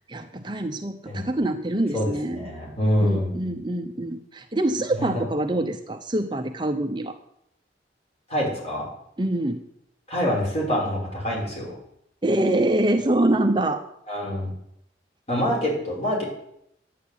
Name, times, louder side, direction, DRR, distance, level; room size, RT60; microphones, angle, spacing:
voice 1, 0.1-2.5 3.0-7.2 9.2-9.6 12.2-13.8, right 1 dB, 25° right, 6 dB, 0.8 m, -25 dB
voice 2, 1.9-3.4 4.9-5.2 8.3-8.8 10.1-11.7 14.1-14.5 15.3-16.2, equal, 35° left, -3 dB, 6.1 m, -25 dB
11.5 x 9.3 x 8.7 m, 0.74 s
head